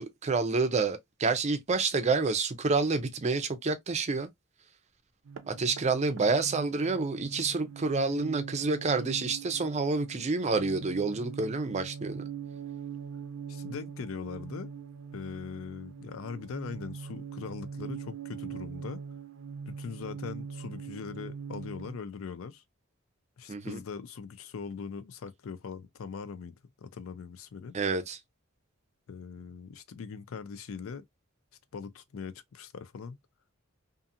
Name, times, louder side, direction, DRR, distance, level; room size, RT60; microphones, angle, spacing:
voice 1, 0.0-4.3 5.5-12.2 23.5-23.8 27.7-28.2, right 4 dB, 35° right, 0.5 m, -28 dB
sound 1, 5.3-22.0, right 6 dB, 85° right, 0.5 m, -42 dB
voice 2, 13.5-14.7 15.1-19.0 19.7-22.6 23.4-27.7 29.1-31.0 31.7-33.2, left 5 dB, 80° left, 0.4 m, -41 dB
2.7 x 2.5 x 2.4 m
head